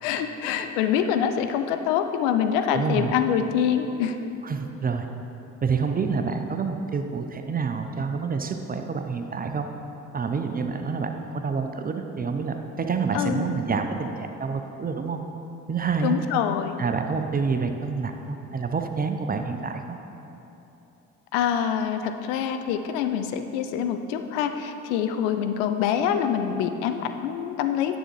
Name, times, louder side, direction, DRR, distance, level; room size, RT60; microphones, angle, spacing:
voice 1, 0.0-4.2 13.1-13.5 16.0-16.7 21.3-28.0, left 8 dB, 70° left, 8 dB, 0.6 m, -25 dB
voice 2, 2.7-3.1 4.4-5.1 5.6-9.7 10.1-15.2 15.7-16.2 16.8-20.0, right 5 dB, 25° right, 6 dB, 0.5 m, -28 dB
10.0 x 7.1 x 3.1 m, 3.0 s
figure-of-eight pair, 45°, 38 cm